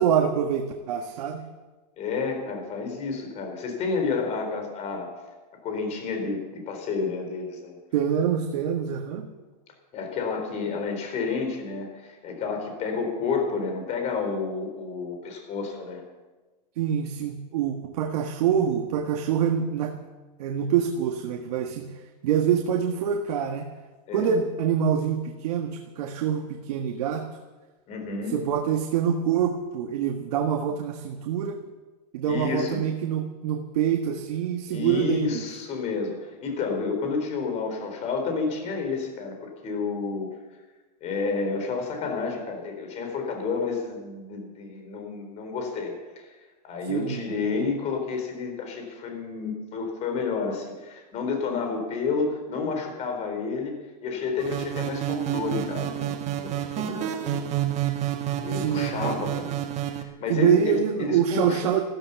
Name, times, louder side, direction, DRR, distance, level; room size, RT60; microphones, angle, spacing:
voice 1, 0.0-1.4 7.9-9.3 16.8-20.0 20.4-21.9 22.2-23.7 24.1-27.3 28.3-31.6 32.1-35.4 46.9-47.3 58.5-59.2 60.3-61.8, right 8 dB, 65° right, 3 dB, 1.6 m, -25 dB
voice 2, 2.0-5.1 5.6-7.8 9.9-16.0 24.1-24.4 27.9-28.3 32.2-32.8 34.7-40.3 41.0-46.2 46.6-53.7 54.0-56.1 56.4-57.4 58.4-59.5 59.9-61.8, left 4 dB, 30° left, 4 dB, 4.1 m, -30 dB
sound 1, 54.4-60.0, right 11 dB, 30° right, 1.6 m, -29 dB
15.0 x 14.0 x 7.0 m, 1.2 s
supercardioid pair, 150°, 21 cm